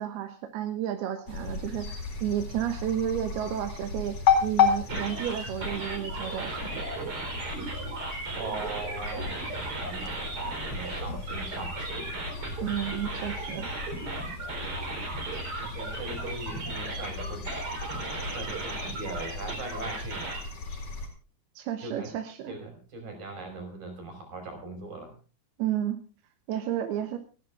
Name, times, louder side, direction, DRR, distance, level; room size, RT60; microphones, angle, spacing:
voice 1, 0.0-6.9 12.6-13.7 21.5-22.6 25.6-26.0 26.5-27.2, right 11 dB, 85° right, 6 dB, 3.2 m, -32 dB
sound 1, 1.3-21.1, left 6 dB, 45° left, 5.2 m, -33 dB
sound 2, 4.9-20.4, right 2 dB, 35° right, 4.4 m, -36 dB
voice 2, 8.3-12.1 15.6-17.5 18.3-20.3 21.8-22.1 22.5-25.1, right 2 dB, 60° right, 4 dB, 6.7 m, -40 dB
30.0 x 11.0 x 2.4 m, 0.36 s
omnidirectional pair, 4.5 m